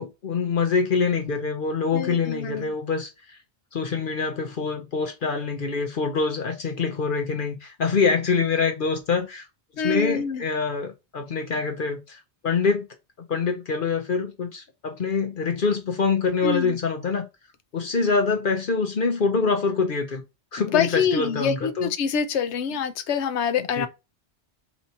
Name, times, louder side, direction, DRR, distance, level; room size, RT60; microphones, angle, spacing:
voice 1, 0.0-3.4 3.7-9.4 9.8-12.9 13.3-17.2 17.7-20.2 20.5-21.9 23.8-23.9, left 5 dB, 55° left, 0.8 m, -25 dB
voice 2, 1.9-2.7 9.8-10.4 16.4-16.8 20.6-23.9, left 6 dB, 80° left, 0.9 m, -26 dB
4.1 x 2.8 x 4.4 m
omnidirectional pair, 1.1 m